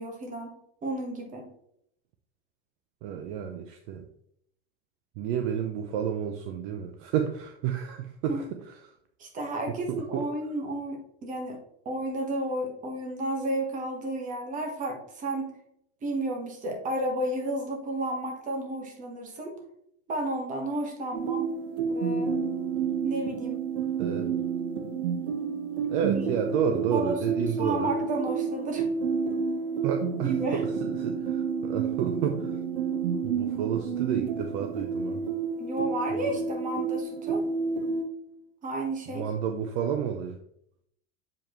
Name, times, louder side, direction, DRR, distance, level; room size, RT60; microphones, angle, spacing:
voice 1, 0.0-1.5 8.3-8.4 9.2-11.6 11.8-15.5 16.0-19.6 20.1-21.5 21.8-22.3 23.0-23.6 26.1-26.3 26.7-28.9 30.3-30.6 32.9-33.2 35.6-37.4 38.6-39.3, right 1 dB, 25° right, 2 dB, 1.3 m, -32 dB
voice 2, 3.0-4.0 5.2-8.4 10.1-10.2 24.0-24.3 25.9-27.9 29.8-30.3 30.8-32.5 33.2-35.2 36.1-36.3 39.1-40.4, right 8 dB, 50° right, 5 dB, 0.6 m, -30 dB
sound 1, 21.1-38.1, right 5 dB, 75° right, 1.0 m, -30 dB
7.0 x 5.0 x 3.0 m, 0.72 s
supercardioid pair, 155°, 33 cm